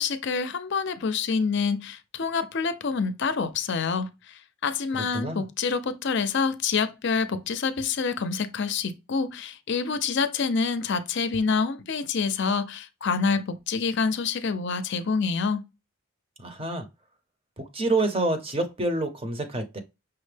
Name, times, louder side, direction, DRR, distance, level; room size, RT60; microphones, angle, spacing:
voice 1, 0.0-15.6, left 5 dB, 55° left, 0.5 m, -27 dB
voice 2, 4.9-5.4 16.4-16.9 17.6-19.8, right 2 dB, 25° right, 0.7 m, -28 dB
5.8 x 2.1 x 3.2 m
head